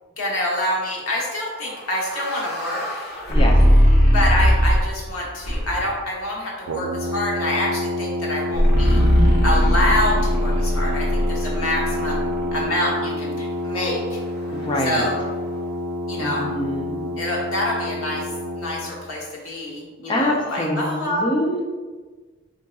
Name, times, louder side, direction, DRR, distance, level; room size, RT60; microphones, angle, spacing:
voice 1, 0.2-2.9 4.1-9.0 9.4-12.2 12.5-14.2 14.8-15.2 16.1-16.5 17.2-21.2, left 1 dB, 85° left, -3 dB, 1.0 m, -26 dB
sound 1, 1.6-5.0 5.4-6.0 8.5-12.6, equal, 50° left, 0.9 m, -19 dB
Brass instrument, 6.7-18.9, left 1 dB, 85° right, 0.4 m, -28 dB
voice 2, 14.5-15.0 16.2-17.0 20.1-21.6, left 1 dB, 25° left, 0 dB, 0.4 m, -24 dB
4.0 x 3.6 x 2.3 m, 1.4 s
head